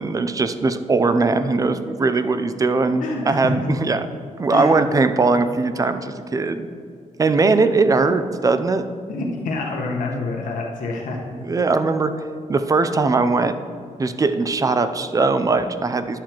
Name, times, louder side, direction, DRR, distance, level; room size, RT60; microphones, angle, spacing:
voice 1, 0.0-4.1 4.4-6.7 7.2-8.8 11.4-12.1 12.5-13.6 14.0-16.2, right 3 dB, 25° right, 10 dB, 0.5 m, -20 dB
voice 2, 3.0-3.5 4.5-4.8 9.1-11.2, left 2 dB, 80° left, 0 dB, 1.2 m, -27 dB
10.5 x 7.4 x 3.0 m, 2.2 s
cardioid pair, 115°, 13 cm